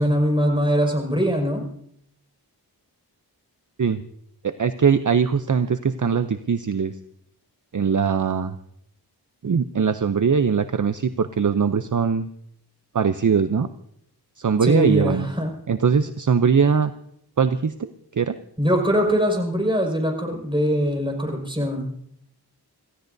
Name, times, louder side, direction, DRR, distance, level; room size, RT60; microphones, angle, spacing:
voice 1, 0.0-1.7 14.6-15.5 18.6-21.9, equal, 15° right, 1 dB, 5.2 m, -22 dB
voice 2, 4.4-6.9 7.7-8.6 9.4-12.3 12.9-13.7 14.4-15.3 15.7-16.9 17.4-18.4, right 6 dB, 50° right, 10 dB, 0.6 m, -21 dB
26.5 x 15.5 x 2.7 m, 0.69 s
wide cardioid pair, 55°, 39 cm